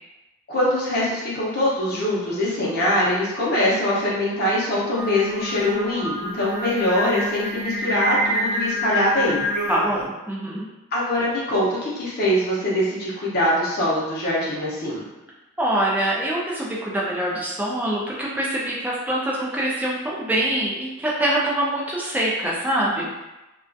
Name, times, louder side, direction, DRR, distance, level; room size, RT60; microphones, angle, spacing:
voice 1, 0.5-9.5 10.9-15.1, left 1 dB, 45° left, -6 dB, 0.7 m, -23 dB
Singing, 4.9-10.0, equal, 35° right, 1.1 m, -27 dB
voice 2, 9.7-10.7 15.6-23.2, right 1 dB, 5° right, -5 dB, 0.3 m, -24 dB
2.3 x 2.2 x 2.5 m, 1.0 s
head